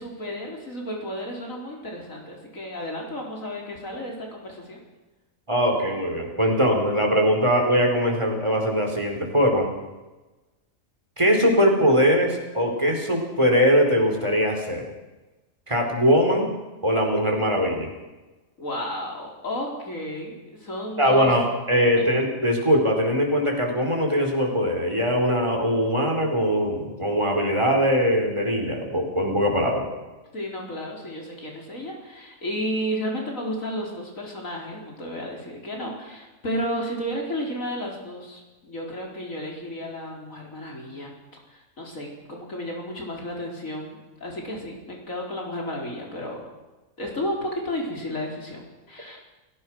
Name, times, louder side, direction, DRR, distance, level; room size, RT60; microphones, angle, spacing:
voice 1, 0.0-4.8 18.6-21.3 22.0-22.1 30.3-41.1 41.5-46.5 47.0-48.6 48.9-49.2, equal, 80° left, -1 dB, 4.9 m, -32 dB
voice 2, 5.5-9.7 11.2-14.8 15.7-16.5 16.8-17.9 21.0-29.9, equal, 20° right, 2 dB, 4.6 m, -21 dB
30.0 x 16.5 x 6.3 m, 1.1 s
omnidirectional pair, 1.4 m